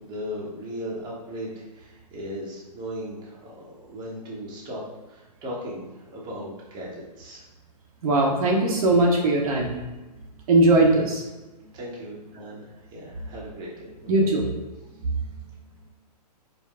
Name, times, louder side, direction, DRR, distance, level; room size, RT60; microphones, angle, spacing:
voice 1, 0.0-4.8 5.1-7.5 11.7-14.1, equal, 20° right, -5 dB, 1.0 m, -37 dB
voice 2, 8.0-9.7 10.5-11.2 14.1-14.5 15.0-15.1, right 2 dB, 55° right, -1 dB, 0.9 m, -20 dB
4.7 x 2.2 x 3.6 m, 1.1 s
hypercardioid pair, 135°, 21 cm